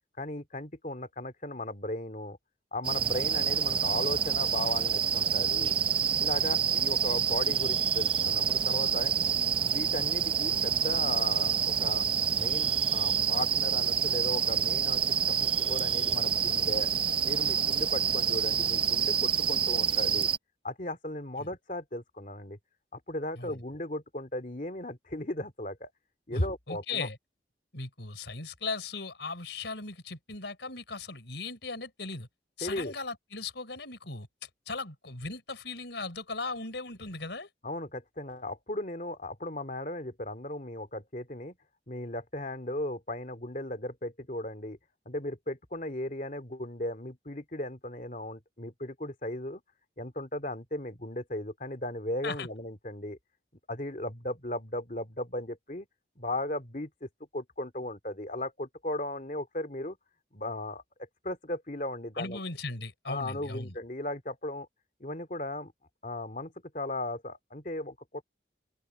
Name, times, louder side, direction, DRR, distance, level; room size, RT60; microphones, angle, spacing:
voice 1, 0.2-2.4 2.7-5.8 6.2-9.1 9.6-12.1 12.3-15.0 15.3-16.9 17.2-20.3 20.6-22.6 22.9-25.9 26.3-27.1 32.6-32.9 37.6-41.6 41.9-44.8 45.1-49.6 50.0-53.2 53.7-55.9 56.2-60.0 60.3-60.8 61.2-62.4 63.1-64.7 65.0-65.7 66.0-68.2, left 1 dB, 45° left, 2.7 m, -36 dB
sound 1, 2.8-20.4, right 7 dB, 30° right, 0.7 m, -27 dB
voice 2, 26.3-27.2 27.7-32.3 32.6-37.5 52.2-52.5 62.2-63.7, left 3 dB, 80° left, 4.1 m, -37 dB
open air
head